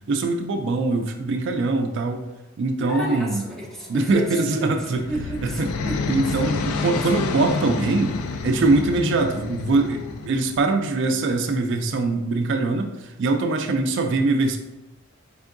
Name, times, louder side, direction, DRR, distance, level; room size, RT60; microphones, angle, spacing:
voice 1, 0.1-2.2 2.6-3.4 3.9-5.0 5.4-5.7 6.1-8.2 8.4-14.6, right 3 dB, 55° right, 5 dB, 0.3 m, -22 dB
voice 2, 2.8-6.7 7.0-7.1, right 2 dB, ahead, -2 dB, 0.5 m, -32 dB
sound 1, 2.9-10.8, left 3 dB, 55° left, 0.8 m, -43 dB
sound 2, 4.8-10.7, left 4 dB, 80° left, 0.3 m, -29 dB
4.4 x 3.4 x 2.5 m, 1.0 s
head